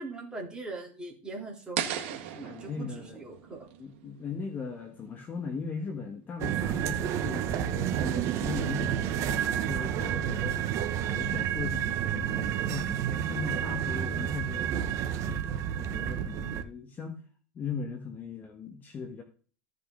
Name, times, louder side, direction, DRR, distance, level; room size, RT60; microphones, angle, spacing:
voice 1, 0.0-3.7, right 2 dB, 10° right, -1 dB, 3.2 m, -41 dB
sound 1, 1.8-4.8, right 10 dB, 70° right, 1.6 m, -37 dB
voice 2, 2.4-3.2 3.8-10.7 11.1-17.2 17.5-19.2, left 5 dB, 25° left, 4 dB, 1.5 m, -38 dB
sound 2, 6.4-16.6, right 10 dB, 45° right, 0.9 m, -30 dB
15.0 x 5.3 x 3.8 m, 0.41 s
supercardioid pair, 135°, 7 cm